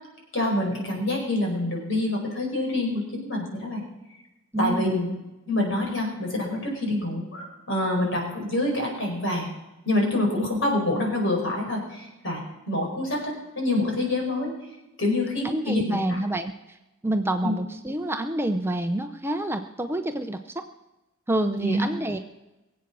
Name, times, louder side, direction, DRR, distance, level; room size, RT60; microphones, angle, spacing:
voice 1, 0.3-3.8 4.6-5.1 5.5-9.5 9.8-14.5 15.0-16.2 17.4-17.5 21.6-21.9, left 1 dB, 60° left, 0 dB, 5.0 m, -26 dB
voice 2, 4.5-5.0 15.4-16.8 17.0-20.6 21.3-22.2, right 1 dB, 10° right, 7 dB, 0.6 m, -27 dB
22.0 x 8.3 x 6.1 m, 1.0 s
head